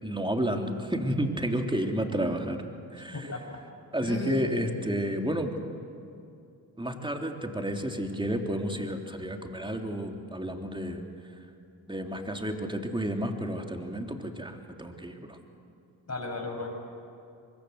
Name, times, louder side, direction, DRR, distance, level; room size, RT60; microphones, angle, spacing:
voice 1, 0.0-2.6 2.9-3.4 3.9-5.5 6.8-11.0 11.9-15.4, equal, 10° right, 3 dB, 3.3 m, -31 dB
voice 2, 3.1-3.6 4.0-4.5 16.1-16.8, left 1 dB, 30° left, 2 dB, 6.7 m, -35 dB
23.5 x 22.5 x 8.2 m, 2.5 s
hypercardioid pair, 40°, 48 cm